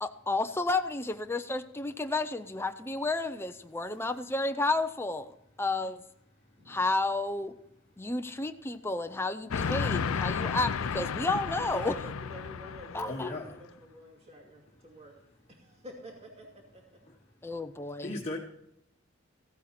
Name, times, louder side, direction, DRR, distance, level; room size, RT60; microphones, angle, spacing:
voice 1, 0.0-5.3 5.6-6.0 6.7-7.5 8.0-11.9 12.9-13.3 17.4-18.1, left 2 dB, 10° left, 7 dB, 0.5 m, -31 dB
Train, 9.5-13.4, left 6 dB, 75° left, 0.5 m, -33 dB
voice 2, 11.7-15.1 15.5-17.0, equal, 30° right, 0 dB, 2.5 m, -48 dB
voice 3, 13.1-13.6 18.0-18.4, left 2 dB, 30° left, -2 dB, 1.3 m, -36 dB
15.5 x 8.9 x 4.3 m, 0.78 s
head